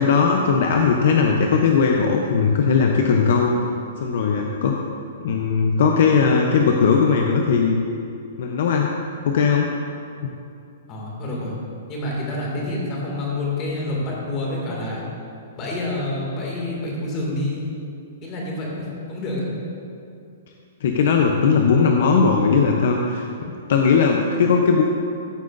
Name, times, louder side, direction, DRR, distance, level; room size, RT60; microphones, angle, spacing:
voice 1, 0.0-3.5 4.0-4.8 5.2-7.8 8.4-8.9 9.3-9.7 20.8-24.8, left 5 dB, 60° left, 2 dB, 0.6 m, -18 dB
voice 2, 10.9-11.6 11.9-15.0 15.5-17.6 18.2-19.4, left 1 dB, 25° left, -4 dB, 2.2 m, -28 dB
14.0 x 7.7 x 2.6 m, 2.6 s
hypercardioid pair, 160°, 0 cm